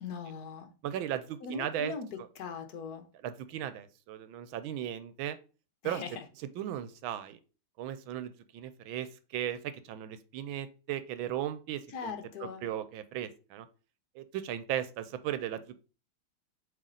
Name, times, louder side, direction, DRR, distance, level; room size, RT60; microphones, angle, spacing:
voice 1, 0.0-0.7 1.4-2.1 2.4-3.0 5.8-6.2 11.9-12.6, left 5 dB, 60° left, 1.3 m, -40 dB
voice 2, 0.8-1.9 3.2-5.4 5.8-6.0 6.6-7.4 7.8-13.7 14.1-15.8, right 11 dB, 85° right, 1.4 m, -37 dB
7.6 x 3.3 x 3.8 m
omnidirectional pair, 2.2 m